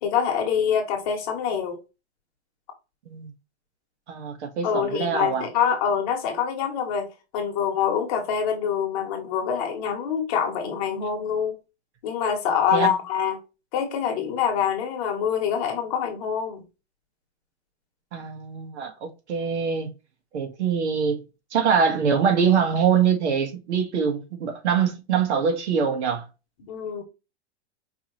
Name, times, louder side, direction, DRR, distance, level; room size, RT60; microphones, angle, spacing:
voice 1, 0.0-1.8 4.6-7.1 7.3-11.6 12.0-13.4 13.7-16.6 26.7-27.0, left 7 dB, 35° left, 1.3 m, -25 dB
voice 2, 4.1-5.5 12.7-12.9 18.1-19.9 20.3-21.2 21.5-26.2, right 6 dB, 85° right, 1.7 m, -24 dB
5.1 x 3.1 x 3.1 m
supercardioid pair, 180°, 33 cm